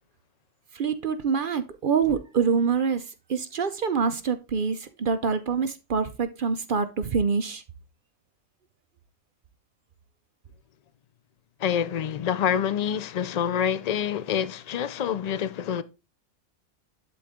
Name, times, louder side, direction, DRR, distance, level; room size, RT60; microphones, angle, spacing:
voice 1, 0.7-7.6, right 6 dB, 50° right, 0.7 m, -26 dB
voice 2, 11.6-15.8, left 8 dB, 70° left, 0.3 m, -27 dB
11.0 x 3.8 x 3.5 m
omnidirectional pair, 1.3 m